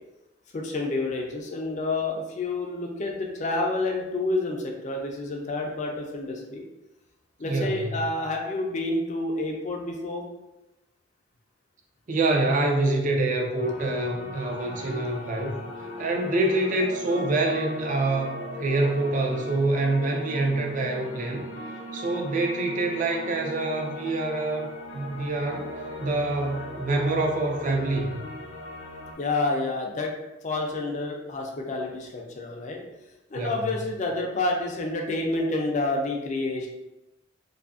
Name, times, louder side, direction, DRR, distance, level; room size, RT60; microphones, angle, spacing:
voice 1, 0.5-6.6 7.4-10.2 29.2-30.1 30.4-32.8 33.3-36.7, left 2 dB, 40° left, 0 dB, 0.4 m, -29 dB
voice 2, 7.5-7.9 12.1-15.6 16.0-21.4 21.9-25.7 26.0-28.1 33.4-33.7, right 2 dB, 40° right, 1 dB, 0.4 m, -26 dB
sound 1, 13.5-29.1, left 1 dB, 70° left, 0.7 m, -39 dB
2.6 x 2.4 x 2.4 m, 0.98 s
head